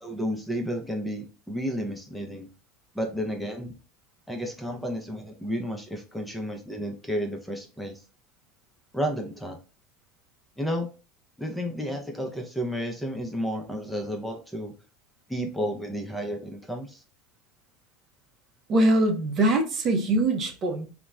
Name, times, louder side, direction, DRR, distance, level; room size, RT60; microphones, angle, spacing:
voice 1, 0.0-2.5 2.9-3.7 4.3-8.0 8.9-9.6 10.6-10.9 11.4-14.7 15.3-17.0, equal, ahead, 0.7 m, -32 dB
voice 2, 18.7-20.9, right 1 dB, 40° right, 0.7 m, -23 dB
2.9 x 2.2 x 2.3 m
hypercardioid pair, 90°, 0 cm